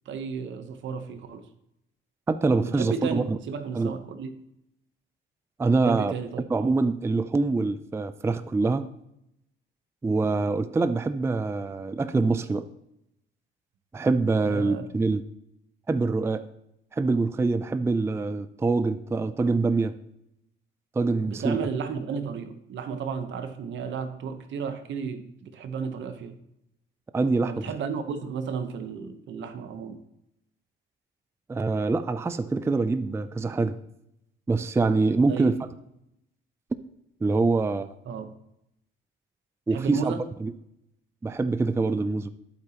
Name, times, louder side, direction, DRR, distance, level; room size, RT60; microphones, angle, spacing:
voice 1, 0.1-1.5 2.6-4.3 5.8-6.5 14.4-14.9 21.2-26.4 27.4-30.0 35.3-35.5 38.1-38.3 39.7-40.3, right 6 dB, 70° right, 9 dB, 0.9 m, -33 dB
voice 2, 2.3-3.4 3.7-3.9 5.6-6.1 6.5-8.9 10.0-12.7 13.9-15.2 15.9-16.5 16.9-19.9 21.0-21.7 27.1-27.6 31.5-33.8 34.5-35.6 37.2-37.9 39.7-40.1 40.4-40.5 41.2-42.3, right 3 dB, 15° right, 12 dB, 0.4 m, -25 dB
8.7 x 8.0 x 2.9 m, 0.81 s
cardioid pair, 90°, 20 cm